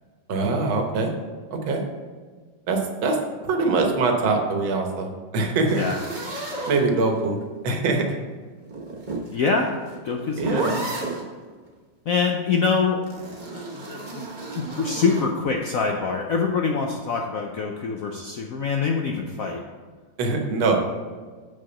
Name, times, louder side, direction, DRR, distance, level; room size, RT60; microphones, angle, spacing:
voice 1, 0.3-1.1 1.5-1.8 2.7-3.2 3.4-5.8 6.7-7.4 7.6-8.1 10.4-10.7 20.2-20.9, right 3 dB, 80° right, 3 dB, 1.9 m, -23 dB
sound 1, 5.7-7.4 8.6-11.3 13.0-15.3, right 3 dB, 30° right, 1.1 m, -32 dB
voice 2, 9.3-9.7 10.0-10.8 12.1-13.0 13.5-14.0 14.5-19.6, left 5 dB, 70° left, 1 dB, 0.8 m, -25 dB
8.6 x 4.7 x 5.7 m, 1.5 s
omnidirectional pair, 2.2 m